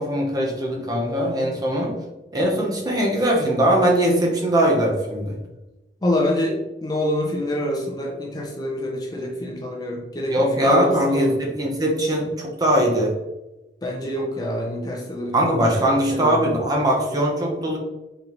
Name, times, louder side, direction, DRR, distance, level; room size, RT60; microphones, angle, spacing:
voice 1, 0.0-2.0 2.3-5.4 10.3-13.1 15.3-17.8, right 1 dB, 20° right, -1 dB, 0.7 m, -21 dB
voice 2, 6.0-11.4 13.8-15.3 15.8-16.5, left 1 dB, 20° left, -1 dB, 0.6 m, -26 dB
3.9 x 3.3 x 2.9 m, 1.0 s
head